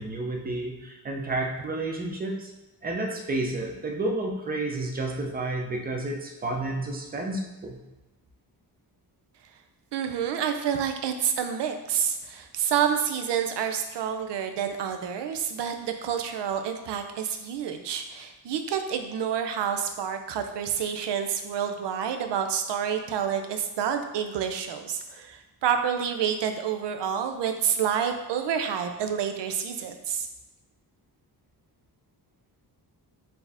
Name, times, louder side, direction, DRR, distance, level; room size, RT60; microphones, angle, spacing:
voice 1, 0.0-2.5 2.8-7.8, right 2 dB, 25° right, 1 dB, 0.5 m, -31 dB
voice 2, 9.9-30.3, right 8 dB, 85° right, 6 dB, 0.6 m, -28 dB
4.2 x 2.8 x 3.4 m, 1.1 s
wide cardioid pair, 150°, 41 cm